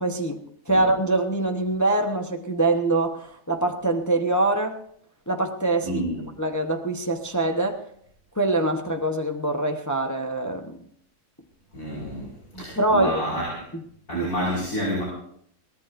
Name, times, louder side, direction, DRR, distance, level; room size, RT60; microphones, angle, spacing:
voice 1, 0.0-4.8 5.3-6.0 6.4-7.8 8.4-10.8 12.5-13.2 14.1-14.3, right 2 dB, 15° left, 3 dB, 0.7 m, -24 dB
voice 2, 5.8-6.2 11.7-12.3 12.5-13.5 14.1-15.0, equal, 70° left, -7 dB, 6.0 m, -28 dB
22.5 x 18.0 x 2.6 m, 0.67 s
omnidirectional pair, 1.7 m